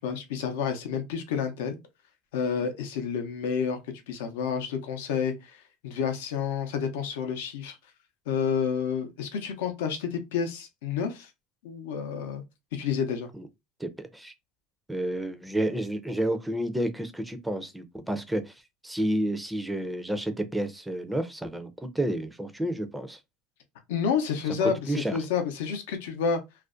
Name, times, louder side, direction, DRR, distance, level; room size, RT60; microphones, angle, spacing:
voice 1, 0.0-1.8 2.3-3.8 4.1-7.8 8.3-11.3 11.6-12.4 12.7-13.3 23.9-26.4, left 6 dB, 85° left, 0.6 m, -29 dB
voice 2, 13.8-14.3 14.9-23.2 24.6-25.2, right 1 dB, 5° right, 0.4 m, -30 dB
2.4 x 2.1 x 2.3 m
supercardioid pair, 115°, 0 cm